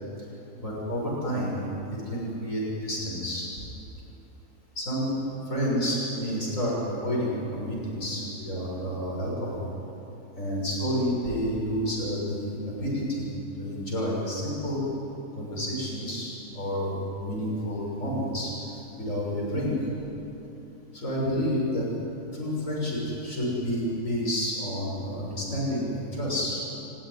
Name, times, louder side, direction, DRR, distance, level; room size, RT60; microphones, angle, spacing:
voice 1, 0.6-3.4 4.7-9.6 10.4-13.3 13.5-14.8 15.3-18.5 19.0-19.8 20.9-21.9 22.3-26.6, equal, 60° left, -4 dB, 6.8 m, -29 dB
29.5 x 16.0 x 9.9 m, 3.0 s
omnidirectional pair, 1.5 m